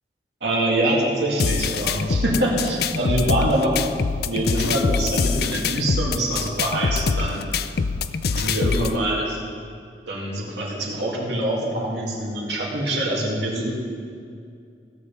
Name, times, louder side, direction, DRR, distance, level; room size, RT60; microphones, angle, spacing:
voice 1, 0.4-3.7 4.2-7.4 8.3-9.4 10.1-13.7, right 1 dB, 75° right, -4 dB, 2.4 m, -24 dB
sound 1, 1.4-9.0, left 5 dB, 60° left, 0.4 m, -24 dB
16.5 x 7.3 x 5.4 m, 2.3 s
head